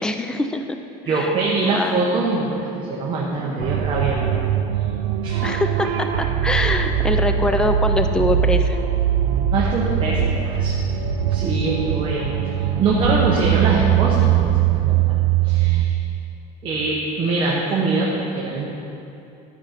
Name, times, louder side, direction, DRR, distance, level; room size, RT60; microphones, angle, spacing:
voice 1, 0.0-0.8 1.0-1.3 1.6-2.0 5.4-8.8, left 2 dB, 5° left, 6 dB, 0.3 m, -23 dB
voice 2, 1.0-4.3 5.2-5.5 9.5-10.7 11.3-14.4 14.7-15.1 15.4-16.0 16.6-18.7, right 3 dB, 30° right, -4 dB, 1.0 m, -23 dB
sound 1, 3.6-15.9, right 10 dB, 80° right, 0.6 m, -21 dB
12.0 x 5.1 x 5.8 m, 2.8 s
cardioid pair, 160°, 18 cm